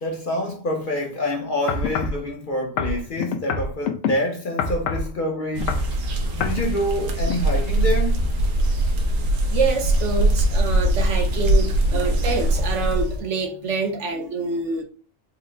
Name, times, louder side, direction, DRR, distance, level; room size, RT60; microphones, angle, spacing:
voice 1, 0.0-5.7 6.3-8.2 11.9-12.5 14.4-14.5, left 1 dB, 50° left, 0.7 m, -27 dB
sound 1, 1.7-2.2 2.8-4.1 4.6-5.1 5.5-5.9 6.4-6.6 7.3-7.4, left 4 dB, 85° left, 1.0 m, -25 dB
sound 2, 5.6-13.2, right 1 dB, 90° right, 1.2 m, -21 dB
voice 2, 9.5-14.8, right 4 dB, 65° right, 1.1 m, -26 dB
4.3 x 2.0 x 3.7 m
omnidirectional pair, 1.3 m